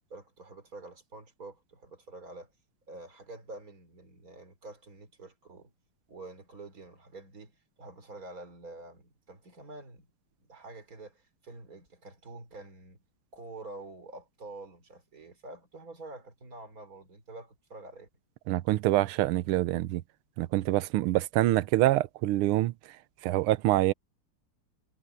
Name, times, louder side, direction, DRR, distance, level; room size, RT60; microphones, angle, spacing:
voice 1, 0.1-2.5 2.9-5.7 6.1-10.1 10.4-13.0 13.3-18.1, right 2 dB, 40° right, 4.5 m, -47 dB
voice 2, 18.5-20.0 20.4-22.7 23.2-23.9, right 16 dB, 80° right, 1.6 m, -25 dB
omnidirectional pair, 2.4 m